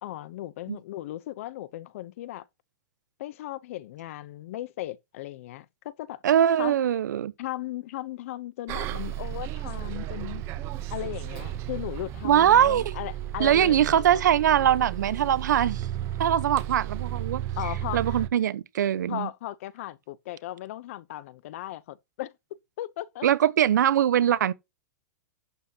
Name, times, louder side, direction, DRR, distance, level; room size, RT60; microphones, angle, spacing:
voice 1, 0.0-2.4 3.2-6.2 6.6-6.8 7.4-10.4 10.9-14.2 17.6-18.2 19.1-22.3 22.8-23.2, left 14 dB, 50° left, 0.7 m, -37 dB
voice 2, 6.2-7.3 12.2-12.8 13.4-15.9 16.2-17.4 17.9-19.3 23.2-24.5, right 10 dB, 85° right, 0.9 m, -22 dB
Bus, 8.7-18.3, right 12 dB, 30° right, 0.8 m, -34 dB
11.5 x 8.1 x 2.9 m
supercardioid pair, 160°, 9 cm